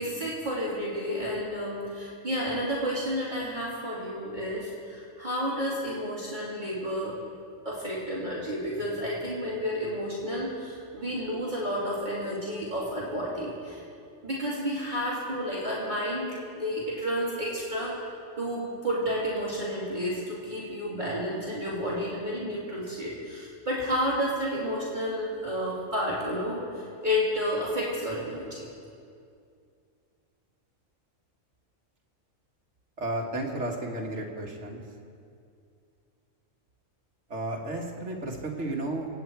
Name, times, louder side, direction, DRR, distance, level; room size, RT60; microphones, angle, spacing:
voice 1, 0.0-7.2 7.6-13.8 14.2-28.6, equal, 35° right, -7 dB, 2.9 m, -31 dB
voice 2, 33.0-34.8 37.3-39.1, right 1 dB, 60° right, 0 dB, 2.0 m, -33 dB
26.5 x 9.1 x 4.6 m, 2.4 s
omnidirectional pair, 1.4 m